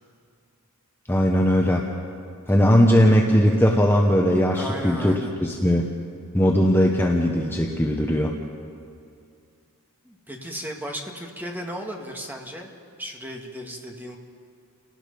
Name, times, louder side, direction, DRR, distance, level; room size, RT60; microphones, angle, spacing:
voice 1, 1.1-1.8 2.5-5.9 6.3-8.3, equal, 10° left, 0 dB, 1.1 m, -19 dB
voice 2, 4.5-5.3 10.0-12.7 13.0-14.2, equal, 10° right, 1 dB, 1.9 m, -35 dB
29.5 x 18.5 x 5.4 m, 2.4 s
head